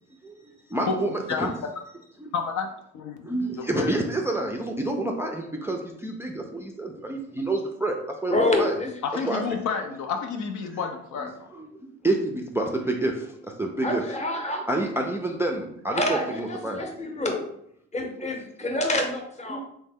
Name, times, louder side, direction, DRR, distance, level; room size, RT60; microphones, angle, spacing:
voice 1, 0.2-1.5 2.2-2.3 3.2-8.7 9.3-9.4 11.5-11.7 12.0-14.0 14.7-16.8 18.0-18.1 19.5-19.6, right 2 dB, 10° right, 1 dB, 0.3 m, -28 dB
voice 2, 2.3-2.7 2.9-3.9 9.0-11.5, left 5 dB, 75° left, 4 dB, 0.6 m, -30 dB
voice 3, 8.3-8.9 13.8-14.8 15.9-17.4 17.9-19.6, left 1 dB, 25° left, 2 dB, 0.8 m, -27 dB
3.1 x 2.1 x 3.5 m, 0.72 s
cardioid pair, 90°, 30 cm